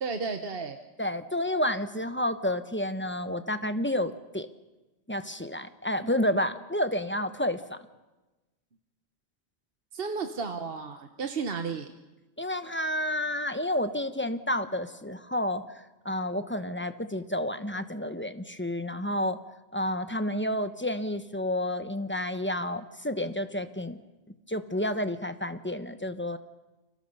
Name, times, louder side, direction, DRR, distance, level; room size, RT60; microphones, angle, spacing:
voice 1, 0.0-0.8 9.9-11.9, right 5 dB, 60° right, 6 dB, 1.3 m, -33 dB
voice 2, 1.0-4.5 5.1-7.8 12.4-15.6 16.0-19.4 19.7-24.0 24.5-26.4, left 1 dB, 10° left, 10 dB, 1.0 m, -30 dB
29.5 x 24.5 x 5.5 m, 1.1 s
omnidirectional pair, 1.1 m